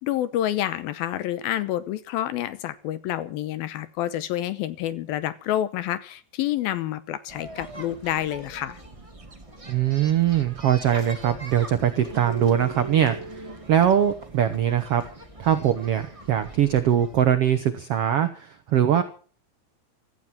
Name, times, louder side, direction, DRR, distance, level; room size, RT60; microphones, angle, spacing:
voice 1, 0.0-8.8, left 12 dB, 75° left, 14 dB, 2.7 m, -28 dB
sound 1, 7.3-17.2, right 3 dB, 15° right, 1.3 m, -40 dB
voice 2, 9.7-15.0 15.4-19.0, right 10 dB, 90° right, 10 dB, 1.3 m, -22 dB
16.0 x 14.5 x 5.9 m, 0.41 s
omnidirectional pair, 4.4 m